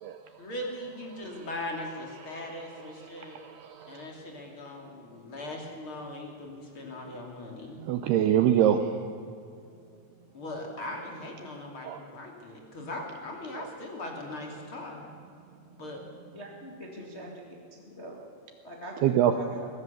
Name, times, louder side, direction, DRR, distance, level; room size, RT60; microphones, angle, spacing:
voice 1, 0.4-3.4 3.9-7.8 10.3-15.1 15.8-16.0, left 1 dB, 35° left, 1 dB, 2.7 m, -39 dB
voice 2, 3.1-4.1 7.9-8.9 11.8-12.0 13.6-13.7 19.0-19.3, right 11 dB, 90° right, 8 dB, 2.3 m, -25 dB
voice 3, 16.3-18.2 18.6-19.7, equal, 55° left, -1 dB, 0.7 m, -44 dB
22.0 x 17.5 x 7.0 m, 2.4 s
omnidirectional pair, 5.6 m